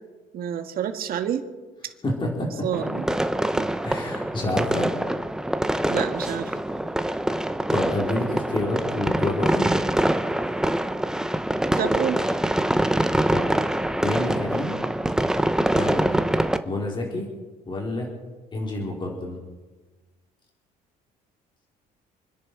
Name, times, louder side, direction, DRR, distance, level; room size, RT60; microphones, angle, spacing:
voice 1, 0.3-1.5 2.6-3.0 5.9-6.5 11.8-12.5, right 9 dB, 60° right, 6 dB, 1.8 m, -28 dB
voice 2, 2.0-2.7 3.8-4.9 7.7-9.7 13.3-13.5 14.0-14.8 15.7-16.2 16.6-17.3 17.7-18.1 18.5-19.4, left 2 dB, 30° left, -1 dB, 3.9 m, -28 dB
sound 1, 2.7-16.6, right 1 dB, 5° right, 0.8 m, -24 dB
28.0 x 10.5 x 4.6 m, 1.3 s
cardioid pair, 110°, 17 cm